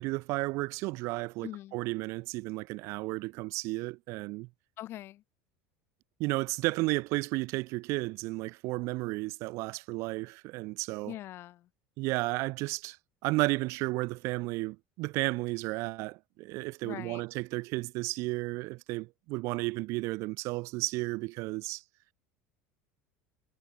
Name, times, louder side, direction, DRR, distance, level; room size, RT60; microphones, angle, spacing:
voice 1, 0.0-4.5 6.2-11.1 12.0-13.0 13.2-21.8, right 23 dB, 60° right, 1.8 m, -33 dB
voice 2, 1.4-1.8 4.8-5.2 11.1-11.7 16.8-17.2, left 14 dB, 50° left, 5.3 m, -42 dB
supercardioid pair, 125°, 5 cm